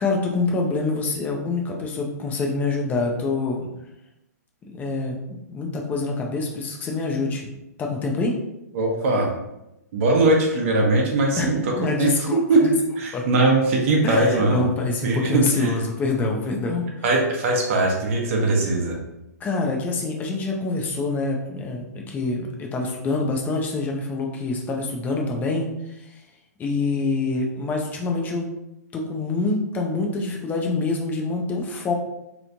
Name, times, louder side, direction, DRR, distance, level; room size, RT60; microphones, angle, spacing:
voice 1, 0.0-3.7 4.6-7.5 7.8-8.4 11.4-12.7 13.1-13.2 14.0-16.8 19.4-26.1 26.6-28.5 28.9-32.0, left 3 dB, 20° left, 1 dB, 0.6 m, -26 dB
voice 2, 8.7-9.3 9.9-11.6 12.0-12.6 13.0-14.6 15.0-15.8 17.0-19.0, right 2 dB, 50° right, 0 dB, 0.9 m, -20 dB
3.2 x 3.0 x 2.6 m, 0.89 s
hypercardioid pair, 125°, 9 cm